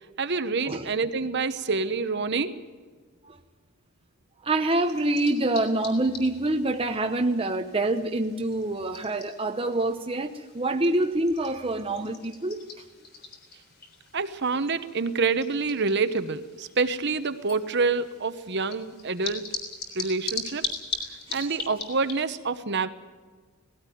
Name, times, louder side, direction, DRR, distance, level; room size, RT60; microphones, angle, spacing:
voice 1, 0.2-2.5 14.1-19.5 19.9-20.6 21.3-22.9, right 4 dB, 50° right, 11 dB, 1.0 m, -27 dB
voice 2, 4.4-12.6 21.3-21.4, right 2 dB, 25° right, 5 dB, 0.8 m, -26 dB
sound 1, 4.7-22.4, left 5 dB, 45° left, 3.6 m, -41 dB
18.5 x 16.5 x 9.3 m, 1.4 s
head